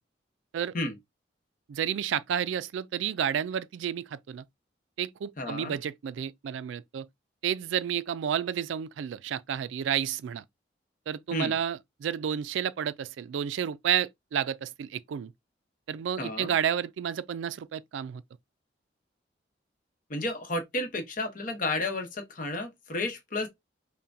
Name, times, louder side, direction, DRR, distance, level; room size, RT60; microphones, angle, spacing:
voice 1, 1.7-4.4 5.0-7.1 7.4-10.4 11.1-15.3 15.9-18.2, right 9 dB, 85° right, 0.3 m, -31 dB
voice 2, 5.4-5.7 11.3-11.6 16.2-16.5 20.1-23.5, left 2 dB, 45° left, 0.9 m, -32 dB
5.5 x 2.2 x 2.6 m
head